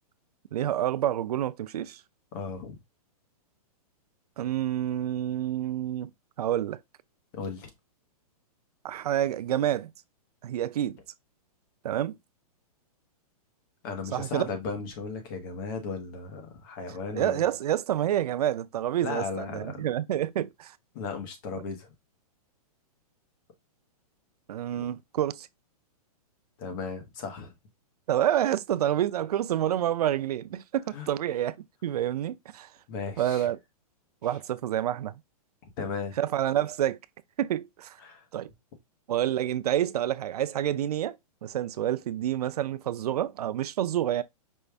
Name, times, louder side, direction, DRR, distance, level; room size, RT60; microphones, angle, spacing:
voice 1, 0.5-2.0 4.4-6.1 6.4-6.8 8.8-9.9 10.4-11.0 11.8-12.2 14.1-14.5 17.1-20.8 24.5-25.5 28.1-31.6 31.8-32.7 33.2-33.6 34.2-35.1 36.2-37.0 37.4-38.0 38.3-38.5 39.1-41.2 41.4-44.2, right 11 dB, 75° right, 0.5 m, -28 dB
voice 2, 2.3-2.8 7.3-7.7 13.8-17.4 19.0-19.9 20.9-21.9 24.8-24.9 26.6-27.5 30.9-31.1 32.9-33.5 35.8-36.2 38.0-38.2, left 4 dB, 35° left, 1.1 m, -36 dB
5.4 x 2.4 x 3.3 m
hypercardioid pair, 165°, 20 cm